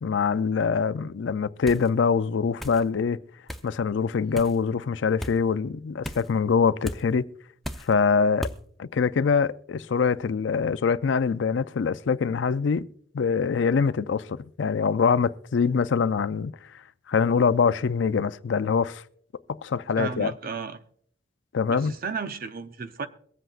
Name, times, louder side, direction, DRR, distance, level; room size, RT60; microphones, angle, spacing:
voice 1, 0.0-3.2 3.6-7.3 7.9-8.5 8.8-12.9 13.1-16.5 17.1-19.0 19.6-20.3 21.5-21.9, left 5 dB, 70° left, 0.4 m, -24 dB
sound 1, 1.7-1.9 2.6-2.8 3.5-3.7 4.3-4.6 5.2-5.4 6.0-6.3 6.8-7.0 7.6-7.9 8.4-8.6, equal, ahead, 0.6 m, -35 dB
voice 2, 20.0-20.8 21.6-23.1, right 5 dB, 50° right, 0.7 m, -33 dB
23.0 x 7.8 x 2.4 m
head